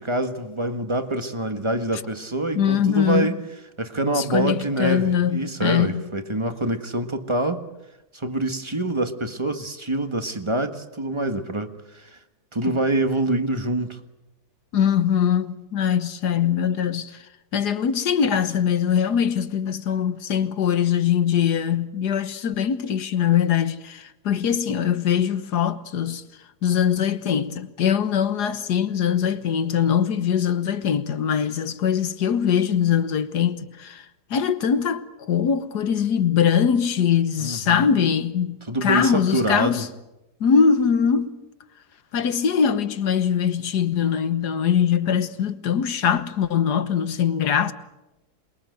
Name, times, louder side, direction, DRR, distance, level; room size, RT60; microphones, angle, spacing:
voice 1, 0.0-3.4 3.8-7.6 8.1-12.2 12.5-14.0 37.4-38.0 38.7-39.9, right 2 dB, 20° right, 1.5 m, -26 dB
voice 2, 2.6-3.3 4.2-6.0 12.6-12.8 14.7-17.1 17.5-26.2 26.6-34.0 34.3-39.9 40.4-41.3 42.1-47.7, left 8 dB, 80° left, 1.8 m, -22 dB
27.5 x 22.0 x 8.0 m
omnidirectional pair, 1.7 m